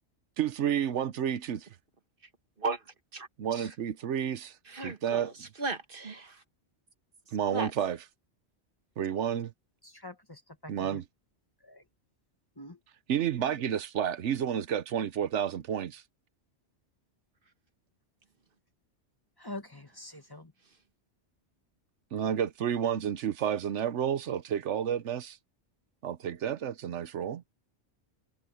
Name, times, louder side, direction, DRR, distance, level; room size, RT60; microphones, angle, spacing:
voice 1, 0.4-1.7 3.4-5.3 7.3-8.0 9.0-9.5 10.7-11.0 13.1-16.0 22.1-25.4 26.0-27.4, right 9 dB, 85° right, 1.1 m, -30 dB
voice 2, 3.1-3.7 4.7-6.4 7.5-7.7, right 3 dB, 50° right, 1.5 m, -36 dB
voice 3, 9.8-11.0 11.6-11.8 12.6-12.8 19.4-20.5, left 1 dB, 20° left, 1.7 m, -45 dB
omnidirectional pair, 1.2 m